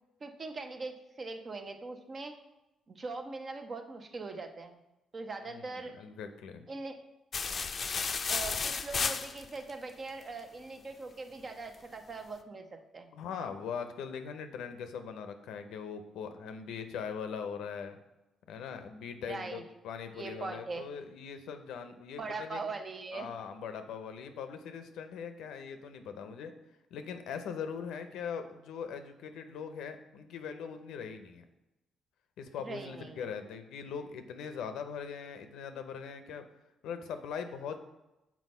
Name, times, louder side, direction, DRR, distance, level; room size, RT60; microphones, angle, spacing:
voice 1, 0.2-2.3 2.9-4.8 5.1-5.9 6.7-7.0 8.3-13.1 19.3-19.6 20.1-20.8 22.2-23.3 32.6-33.3, right 3 dB, 40° right, 6 dB, 0.8 m, -41 dB
voice 2, 5.4-6.7 13.1-18.0 18.5-22.6 23.1-26.5 26.9-31.4 32.4-36.4 36.8-37.8, left 6 dB, 85° left, 8 dB, 0.7 m, -41 dB
sound 1, 7.3-9.7, left 5 dB, 40° left, 0.5 m, -33 dB
6.2 x 4.4 x 5.5 m, 0.96 s
cardioid pair, 90°, 0 cm